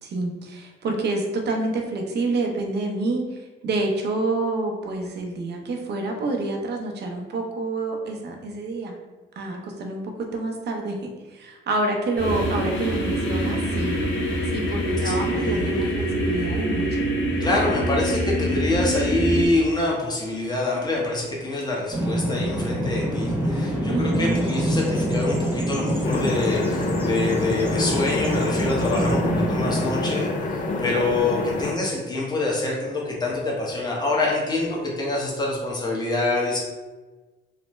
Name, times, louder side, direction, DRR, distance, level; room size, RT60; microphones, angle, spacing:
voice 1, 0.0-8.9 9.4-14.0 14.5-17.0 23.9-24.4, right 2 dB, 55° right, 2 dB, 0.6 m, -28 dB
sound 1, 12.2-19.5, equal, 65° left, 0.9 m, -25 dB
voice 2, 15.0-15.8 17.4-36.6, left 2 dB, 20° left, -3 dB, 1.0 m, -26 dB
Bird vocalization bird call bird song, 21.9-30.2, equal, 10° right, 0.6 m, -25 dB
sound 2, 26.0-31.7, left 3 dB, 40° left, 0.4 m, -27 dB
3.2 x 2.1 x 3.1 m, 1.2 s
cardioid pair, 90°, 20 cm